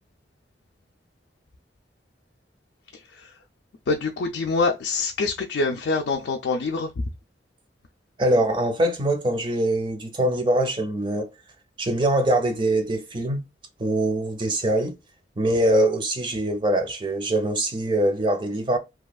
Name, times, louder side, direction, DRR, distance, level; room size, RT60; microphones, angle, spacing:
voice 1, 3.9-6.9, left 3 dB, 80° left, 0.4 m, -25 dB
voice 2, 8.2-11.3 11.8-13.4 13.8-15.0 15.4-18.8, right 1 dB, 25° right, 0.5 m, -23 dB
2.8 x 2.3 x 2.3 m
head